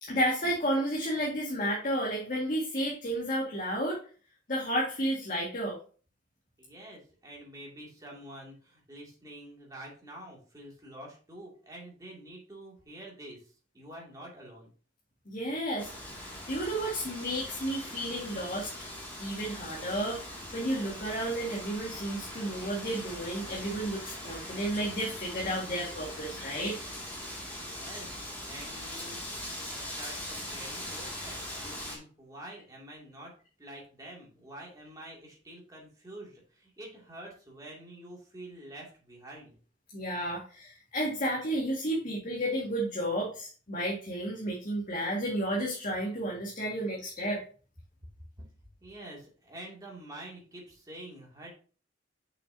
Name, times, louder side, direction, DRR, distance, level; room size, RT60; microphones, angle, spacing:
voice 1, 0.0-4.0 4.5-5.8 15.3-18.7 19.2-26.8 39.9-47.4, equal, 45° left, -3 dB, 1.7 m, -32 dB
voice 2, 6.6-13.4 13.7-14.7 27.6-29.5 29.7-39.6 48.8-51.5, right 1 dB, 20° right, -3 dB, 2.3 m, -47 dB
Wind, 15.8-32.0, left 1 dB, 10° left, 2.1 m, -41 dB
6.7 x 6.3 x 2.7 m, 0.39 s
head